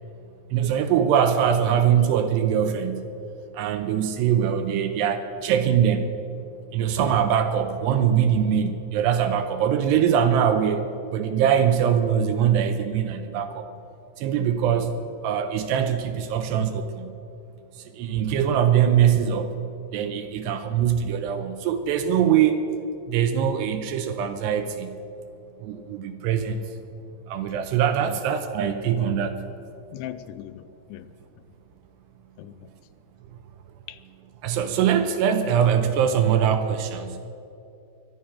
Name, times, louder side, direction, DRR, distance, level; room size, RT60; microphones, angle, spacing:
voice 1, 0.5-3.1 3.5-6.1 6.7-13.7 14.2-14.9 15.2-17.2 17.9-22.6 23.1-25.0 25.6-26.6 27.3-29.4 34.4-37.2, right 8 dB, 75° right, 8 dB, 2.7 m, -22 dB
voice 2, 29.9-31.1 32.4-32.7 33.9-34.0, left 13 dB, 90° left, 13 dB, 3.0 m, -39 dB
23.0 x 10.5 x 5.8 m, 2.7 s
omnidirectional pair, 5.3 m